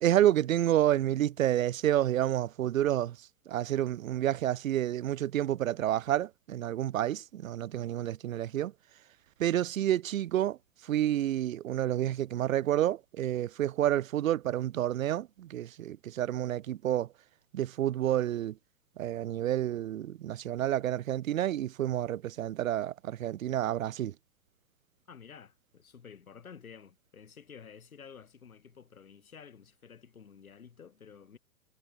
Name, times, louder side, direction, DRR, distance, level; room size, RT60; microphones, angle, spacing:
voice 1, 0.0-3.2 3.5-8.7 9.4-10.6 10.8-17.1 17.5-18.6 19.0-24.1, right 12 dB, 65° right, 0.5 m, -29 dB
voice 2, 25.1-31.4, left 7 dB, 65° left, 5.7 m, -51 dB
figure-of-eight pair, 115°, 45 cm